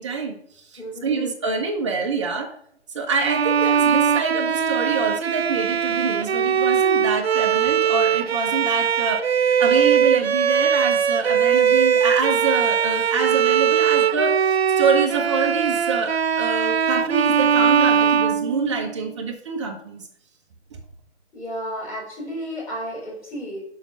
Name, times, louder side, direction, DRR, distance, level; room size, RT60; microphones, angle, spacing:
voice 1, 0.0-2.5 2.9-20.1, right 4 dB, 25° right, 2 dB, 1.2 m, -26 dB
voice 2, 0.8-1.2 21.3-23.6, equal, 5° left, -8 dB, 3.6 m, -32 dB
Bowed string instrument, 3.2-19.1, right 7 dB, 65° right, 0.6 m, -20 dB
7.1 x 5.4 x 5.7 m, 0.66 s
figure-of-eight pair, 155°, 33 cm